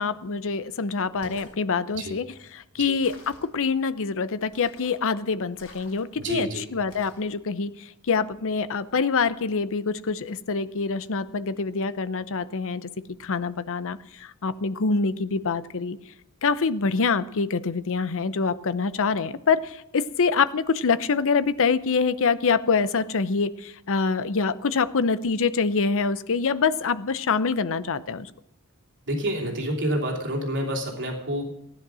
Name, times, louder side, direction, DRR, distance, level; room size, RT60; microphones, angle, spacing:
voice 1, 0.0-12.9 13.2-16.0 16.4-28.3, left 5 dB, 65° left, 14 dB, 0.7 m, -25 dB
sound 1, 1.1-1.6 3.0-3.5 4.5-5.0 5.5-6.2 6.9-7.3, left 2 dB, 85° left, 4.1 m, -48 dB
voice 2, 6.2-6.7 29.1-31.5, right 1 dB, 55° right, 1 dB, 2.9 m, -28 dB
15.5 x 10.5 x 6.2 m, 0.81 s
head